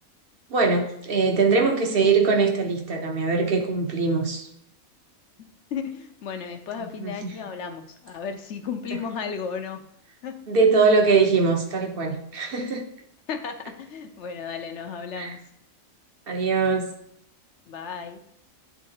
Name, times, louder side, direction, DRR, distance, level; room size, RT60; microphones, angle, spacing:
voice 1, 0.5-4.5 6.8-7.3 10.5-12.8 15.1-15.3 16.3-16.9, right 4 dB, 45° right, 2 dB, 1.1 m, -22 dB
voice 2, 5.7-9.8 10.2-10.4 13.3-15.4 17.7-18.2, left 6 dB, 60° left, 7 dB, 1.0 m, -34 dB
10.5 x 3.6 x 2.9 m, 0.75 s
omnidirectional pair, 1.4 m